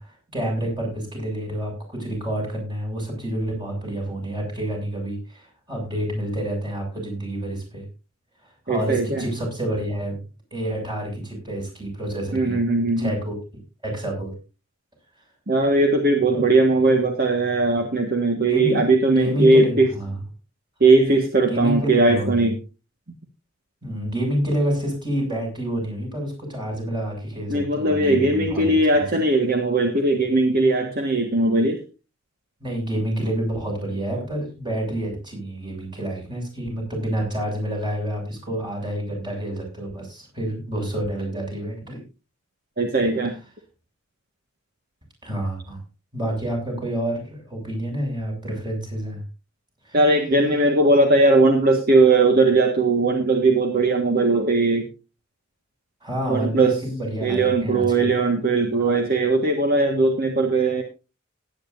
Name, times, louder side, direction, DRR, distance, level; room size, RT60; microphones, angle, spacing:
voice 1, 0.0-7.8 8.4-10.2 10.5-12.6 13.0-13.4 13.8-14.3 16.3-16.4 16.8-17.0 18.5-20.1 21.4-22.5 23.8-28.7 28.9-29.1 32.6-42.0 45.2-45.8 46.1-49.2 49.8-50.0 56.0-58.2, right 1 dB, 25° right, 1 dB, 7.0 m, -28 dB
voice 2, 8.7-9.2 12.3-13.1 15.5-19.9 20.8-22.6 27.5-31.8 42.8-43.3 49.9-54.8 56.3-56.8 57.2-60.8, right 2 dB, 50° right, 3 dB, 1.7 m, -19 dB
18.0 x 10.0 x 2.7 m, 0.31 s
head